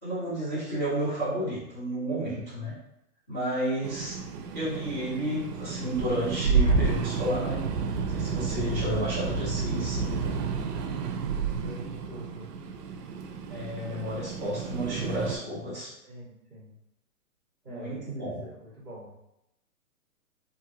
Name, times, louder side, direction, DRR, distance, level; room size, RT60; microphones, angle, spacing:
voice 1, 0.0-2.7 3.3-4.2 4.5-7.6 8.1-10.0 13.5-15.9 17.7-18.4, equal, 10° left, -18 dB, 0.6 m, -31 dB
sound 1, 3.8-15.4, right 5 dB, 85° right, 0.5 m, -30 dB
voice 2, 11.5-12.5 16.0-16.8 17.6-19.2, equal, 5° right, -18 dB, 1.0 m, -45 dB
2.9 x 2.5 x 2.3 m, 0.84 s
hypercardioid pair, 170°, 46 cm